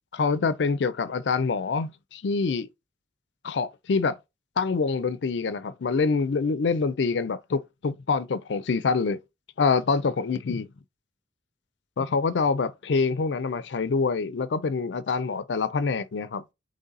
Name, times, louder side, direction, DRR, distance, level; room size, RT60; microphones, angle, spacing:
voice 1, 0.1-2.7 3.4-4.1 4.6-9.2 9.6-10.7 12.0-16.4, left 4 dB, 80° left, 0.5 m, -26 dB
4.0 x 3.2 x 3.9 m
head